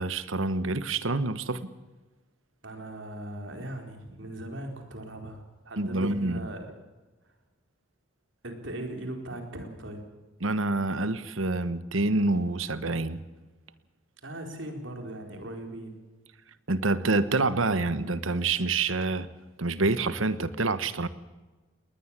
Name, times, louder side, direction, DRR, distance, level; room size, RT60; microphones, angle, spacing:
voice 1, 0.0-1.7 5.8-6.5 10.4-13.2 16.7-19.3 19.6-21.1, right 3 dB, 90° right, 14 dB, 1.3 m, -27 dB
voice 2, 2.6-6.7 8.4-10.0 14.2-16.0, right 1 dB, 70° right, 4 dB, 4.5 m, -39 dB
20.0 x 20.0 x 7.6 m, 1.2 s
head